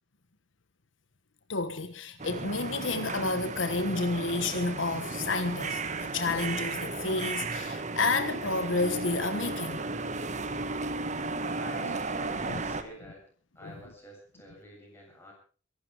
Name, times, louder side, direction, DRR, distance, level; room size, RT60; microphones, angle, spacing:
voice 1, 1.5-9.8 11.8-11.9 12.4-12.6 13.6-13.8, left 3 dB, 75° left, 1.4 m, -30 dB
sound 1, 2.2-12.8, right 3 dB, 40° right, 1.3 m, -34 dB
voice 2, 11.6-15.3, equal, 10° left, 7.7 m, -49 dB
23.0 x 12.0 x 5.0 m
head